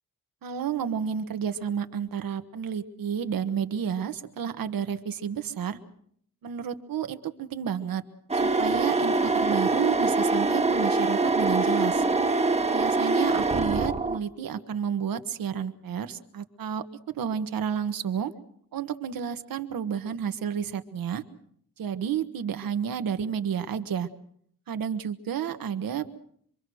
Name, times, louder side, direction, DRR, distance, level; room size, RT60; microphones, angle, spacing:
voice 1, 0.4-5.8 6.4-8.0 8.3-12.0 12.7-16.8 17.1-18.3 18.7-21.2 21.8-24.1 24.7-26.1, right 8 dB, 75° right, 10 dB, 1.5 m, -31 dB
sound 1, 8.3-14.2, right 3 dB, 20° right, 1.1 m, -24 dB
26.0 x 23.0 x 6.3 m, 0.65 s
wide cardioid pair, 120°, 34 cm